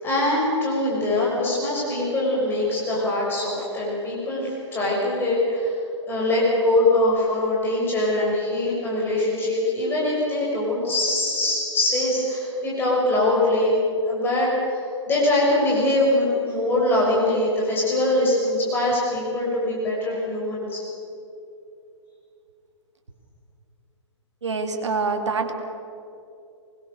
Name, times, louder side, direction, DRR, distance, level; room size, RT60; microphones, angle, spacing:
voice 1, 0.0-5.8 6.0-13.7 14.1-20.8, left 1 dB, 15° left, -5 dB, 6.1 m, -23 dB
voice 2, 24.4-25.5, right 4 dB, 65° right, 4 dB, 3.0 m, -25 dB
24.5 x 21.0 x 6.7 m, 2.7 s
figure-of-eight pair, 120°, 16 cm